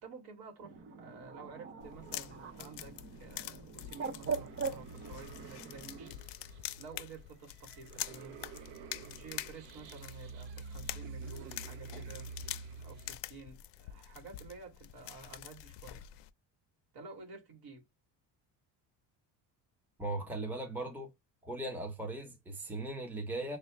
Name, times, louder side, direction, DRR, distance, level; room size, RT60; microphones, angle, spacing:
voice 1, 0.0-6.2 6.8-8.4 8.9-12.3 12.8-16.0 16.9-17.9, right 4 dB, 60° right, 2.5 m, -51 dB
Bird, 0.6-6.1, right 5 dB, 30° right, 0.6 m, -42 dB
sound 1, 1.8-16.3, left 15 dB, 80° left, 0.6 m, -46 dB
sound 2, 4.2-13.2, right 5 dB, 80° right, 0.8 m, -48 dB
voice 2, 20.0-21.1 21.4-23.6, right 2 dB, 5° right, 0.9 m, -38 dB
6.4 x 2.4 x 3.1 m
cardioid pair, 170°, 42 cm